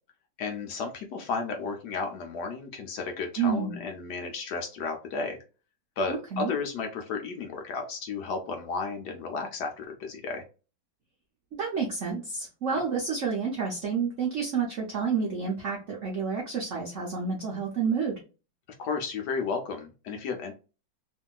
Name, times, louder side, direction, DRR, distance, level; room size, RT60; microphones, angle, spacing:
voice 1, 0.4-5.4 6.0-10.4 18.8-20.5, left 4 dB, 70° left, 4 dB, 1.1 m, -33 dB
voice 2, 3.4-3.8 6.1-6.5 11.5-18.2, right 5 dB, 70° right, -1 dB, 0.7 m, -29 dB
2.9 x 2.6 x 2.3 m, 0.32 s
omnidirectional pair, 2.1 m